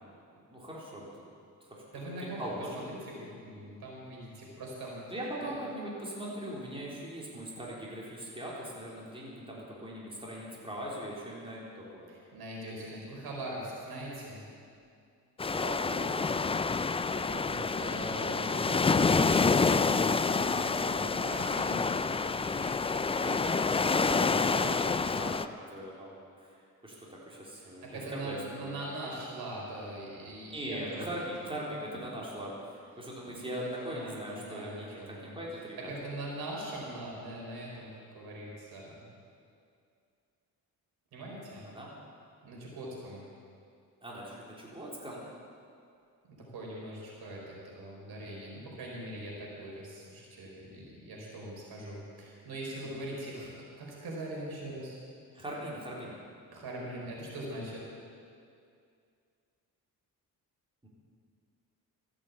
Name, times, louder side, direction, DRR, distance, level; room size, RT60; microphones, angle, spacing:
voice 1, 0.5-1.2 1.6-2.8 5.1-12.1 15.4-16.6 20.3-21.3 24.1-26.5 26.8-29.1 30.5-35.0 35.4-35.9 41.8-41.9 44.0-45.2 52.8-52.9 55.3-56.1 60.8-60.9, right 1 dB, 15° right, -5 dB, 4.0 m, -41 dB
voice 2, 1.9-2.4 2.7-5.0 5.4-5.5 12.1-14.5 16.8-24.6 27.6-31.1 33.3-35.4 35.8-39.0 41.1-41.7 42.4-43.2 46.2-55.0 56.5-57.9, right 1 dB, 75° right, -3 dB, 4.4 m, -42 dB
sound 1, 15.4-25.5, left 4 dB, 15° left, 0.4 m, -28 dB
14.5 x 8.6 x 8.3 m, 2.4 s
cardioid pair, 80°, 37 cm